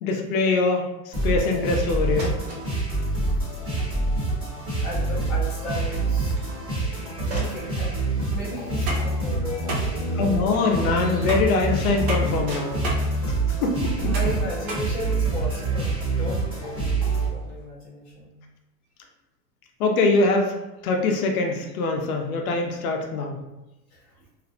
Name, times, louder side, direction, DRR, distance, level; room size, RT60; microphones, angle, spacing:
voice 1, 0.0-2.4 10.2-12.8 13.3-13.4 13.6-13.9 19.8-20.5 20.8-23.4, left 3 dB, 60° left, 3 dB, 0.6 m, -23 dB
sound 1, 1.1-17.3, right 2 dB, 10° right, 0.7 m, -26 dB
sound 2, 2.2-2.6 4.3-4.4 4.9-7.7 8.4-8.5 9.2-9.7 10.1-13.2 14.1-14.3 14.6-17.6, equal, 80° right, 1.2 m, -44 dB
voice 2, 4.8-6.4 6.9-7.9 8.3-10.3 13.3-13.5 14.0-18.4 23.9-24.2, left 1 dB, 10° left, -11 dB, 0.3 m, -35 dB
sound 3, 8.6-15.6, right 2 dB, 55° right, 0.8 m, -35 dB
2.5 x 2.1 x 2.5 m, 0.99 s
hypercardioid pair, 135°, 48 cm